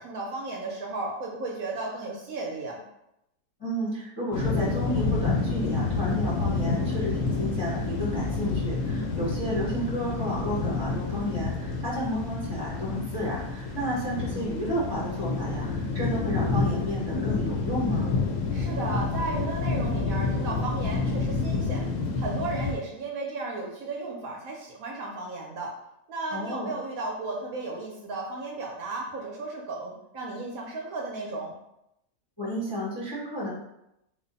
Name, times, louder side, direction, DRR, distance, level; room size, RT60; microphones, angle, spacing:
voice 1, 0.0-2.8 18.5-21.8 22.1-25.7 26.1-31.5, right 3 dB, 65° right, -1 dB, 0.9 m, -34 dB
voice 2, 3.6-18.1 26.3-26.7 32.4-33.5, equal, 25° left, -6 dB, 0.6 m, -32 dB
sound 1, 4.3-22.7, left 3 dB, 70° left, 0.7 m, -29 dB
3.3 x 2.1 x 3.9 m, 0.85 s
omnidirectional pair, 1.8 m